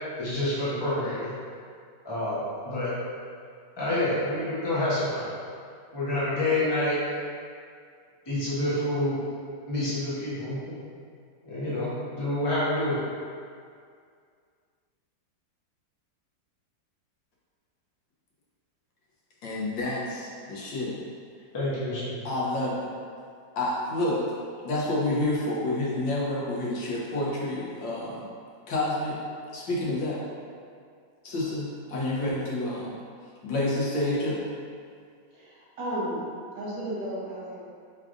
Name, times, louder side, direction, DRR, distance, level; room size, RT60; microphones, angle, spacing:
voice 1, 0.2-1.3 2.0-2.9 3.8-5.3 5.9-7.0 8.3-9.2 9.7-10.7 11.4-13.0 21.5-22.2, left 1 dB, 30° left, -10 dB, 0.5 m, -28 dB
voice 2, 19.4-21.0 22.2-22.9 23.6-24.3 24.6-28.3 28.7-29.2 29.5-30.2 31.2-32.9 33.4-34.4, left 1 dB, 85° left, -5 dB, 1.6 m, -29 dB
voice 3, 35.3-36.2 36.5-37.6, right 1 dB, 55° right, -7 dB, 1.3 m, -33 dB
4.8 x 4.0 x 2.5 m, 2.2 s
omnidirectional pair, 2.0 m